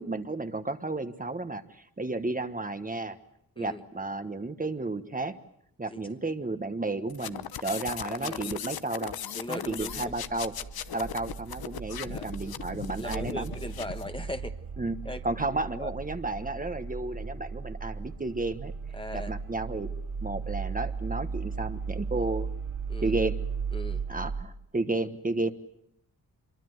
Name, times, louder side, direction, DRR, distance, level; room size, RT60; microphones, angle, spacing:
voice 1, 0.0-1.6 2.0-3.2 3.6-5.3 5.8-9.1 9.5-10.5 10.9-13.5 14.8-15.0 15.2-18.7 19.1-19.9 20.2-22.5 23.0-23.4 24.1-25.5, right 2 dB, 25° right, 9 dB, 1.3 m, -32 dB
sound 1, 7.1-14.1, left 10 dB, 90° left, 0.9 m, -38 dB
voice 2, 8.2-8.8 9.3-10.2 11.9-12.5 13.0-14.5 15.0-15.9 18.9-19.3 22.9-23.2 23.7-24.0, left 1 dB, 15° left, 7 dB, 1.3 m, -39 dB
sound 2, 9.8-24.4, right 5 dB, 60° right, 2.4 m, -36 dB
25.5 x 23.5 x 8.0 m, 0.72 s
wide cardioid pair, 105°, 36 cm